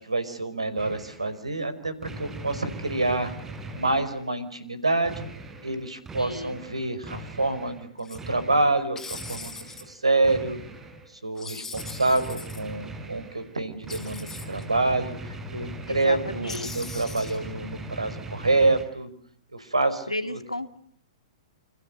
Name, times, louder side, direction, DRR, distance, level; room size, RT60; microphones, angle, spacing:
voice 1, 0.0-3.3 3.7-5.3 5.6-10.6 11.1-19.1 19.5-20.4, right 2 dB, 80° right, 14 dB, 5.3 m, -27 dB
sound 1, 0.8-1.4 2.0-4.4 5.0-7.9 8.1-9.9 10.2-11.1 11.7-18.8, right 2 dB, 15° right, 6.5 m, -40 dB
voice 2, 6.2-6.6 15.9-16.7 20.1-20.8, left 1 dB, 85° left, 11 dB, 2.4 m, -33 dB
sound 2, 8.0-8.2 9.0-9.8 11.4-12.6 13.9-14.6 16.5-17.5, left 4 dB, 10° left, 4.7 m, -40 dB
28.5 x 28.0 x 6.7 m, 0.65 s
figure-of-eight pair, 110°, 3 cm